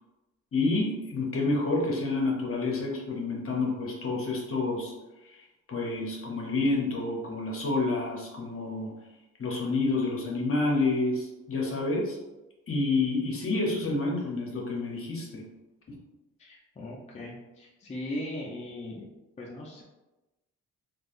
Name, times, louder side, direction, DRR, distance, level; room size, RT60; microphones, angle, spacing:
voice 1, 0.5-4.9 5.2-8.9 9.4-12.2 12.7-15.4 15.9-16.0, left 3 dB, 45° left, -1 dB, 0.9 m, -29 dB
voice 2, 16.4-19.1 19.4-19.8, left 1 dB, 20° left, -3 dB, 0.5 m, -38 dB
3.2 x 2.5 x 2.5 m, 1.0 s
cardioid pair, 90°, 30 cm